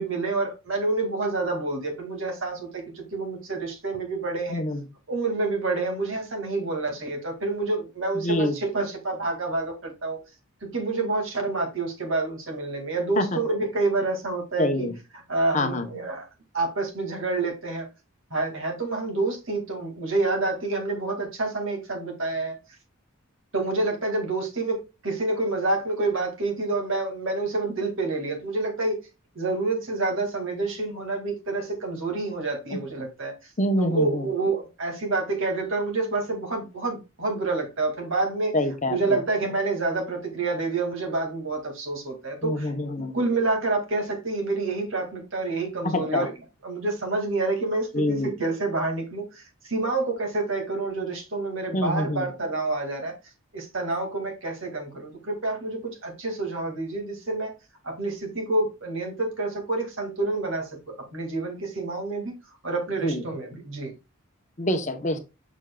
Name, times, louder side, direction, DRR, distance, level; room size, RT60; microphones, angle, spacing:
voice 1, 0.0-4.6 5.1-10.2 10.6-14.9 15.3-16.3 16.5-17.9 18.3-22.6 23.5-29.0 29.3-33.5 33.8-38.6 38.9-42.7 43.1-46.3 46.6-53.1 53.5-57.5 57.8-62.4 62.6-63.9, right 3 dB, 60° right, 2.0 m, -28 dB
voice 2, 4.5-4.8 8.2-8.6 13.2-13.4 14.6-14.9 15.5-15.9 32.7-32.8 33.6-34.2 38.5-39.0 42.4-43.2 45.8-46.3 47.9-48.3 51.7-52.3 63.0-63.2 64.6-65.2, left 1 dB, 35° left, 0.8 m, -25 dB
7.0 x 6.1 x 2.2 m
head